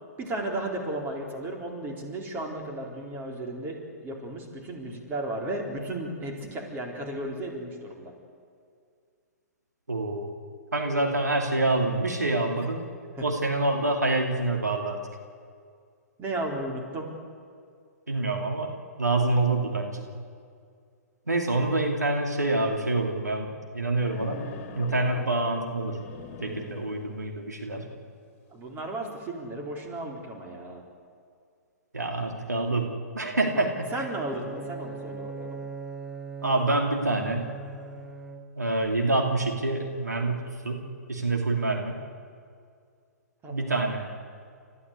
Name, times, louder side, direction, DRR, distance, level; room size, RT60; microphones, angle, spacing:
voice 1, 0.2-8.1 13.2-13.3 16.2-17.1 25.1-25.4 28.5-30.8 33.5-35.6 43.4-43.7, right 1 dB, 20° right, 1 dB, 4.1 m, -34 dB
voice 2, 9.9-10.3 10.7-12.8 13.2-15.0 18.1-20.1 21.3-24.4 24.8-26.0 26.4-27.8 31.9-33.9 36.4-37.5 38.6-42.0 43.5-44.1, right 2 dB, 85° right, 2 dB, 2.7 m, -26 dB
sound 1, 24.0-27.3, left 5 dB, 35° left, 2.9 m, -43 dB
Bowed string instrument, 34.0-38.8, right 4 dB, 5° right, 1.5 m, -40 dB
30.0 x 14.5 x 8.4 m, 2.2 s
figure-of-eight pair, 120°, 9 cm